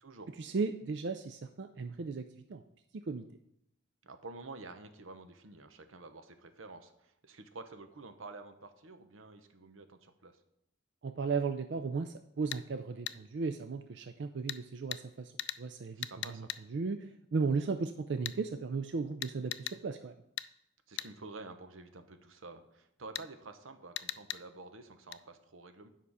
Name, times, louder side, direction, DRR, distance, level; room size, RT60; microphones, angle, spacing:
voice 1, 0.4-2.6 2.9-3.3 11.0-15.3 15.6-20.1, right 4 dB, 60° right, 8 dB, 0.4 m, -36 dB
voice 2, 4.0-10.3 16.0-16.5 20.9-25.9, right 3 dB, 90° right, 8 dB, 0.9 m, -49 dB
sound 1, 12.5-12.6 13.1-13.2 14.5-14.6 14.9-15.0 15.4-15.6 16.0-16.6 18.2-18.4 19.2-19.8 20.4-20.5 21.0-21.1 23.1-23.3 24.0-24.4 25.1-25.2, left 13 dB, 60° left, 0.3 m, -38 dB
9.3 x 5.7 x 4.9 m, 0.79 s
head